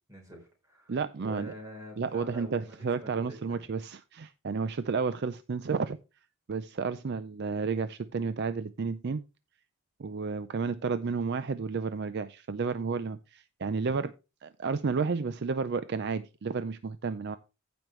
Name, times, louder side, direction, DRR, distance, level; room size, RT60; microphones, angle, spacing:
voice 1, 0.1-3.6, equal, 15° right, 1 dB, 3.7 m, -47 dB
voice 2, 0.9-1.5 2.0-6.0 6.5-9.2 10.0-14.1 14.4-17.4, right 5 dB, 50° right, 13 dB, 0.4 m, -31 dB
15.0 x 5.2 x 3.1 m, 0.29 s
head